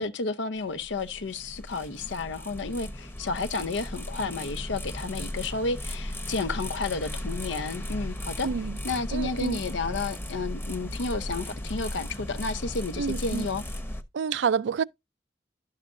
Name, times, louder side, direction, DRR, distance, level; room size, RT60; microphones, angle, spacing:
voice 1, 0.0-8.5 8.8-13.6, left 3 dB, 85° left, 0.7 m, -31 dB
sound 1, 0.6-14.0, left 1 dB, 10° left, 0.9 m, -36 dB
voice 2, 8.4-8.8 9.1-9.6 13.0-13.5 14.1-14.8, right 6 dB, 75° right, 0.4 m, -28 dB
11.5 x 6.5 x 2.5 m
head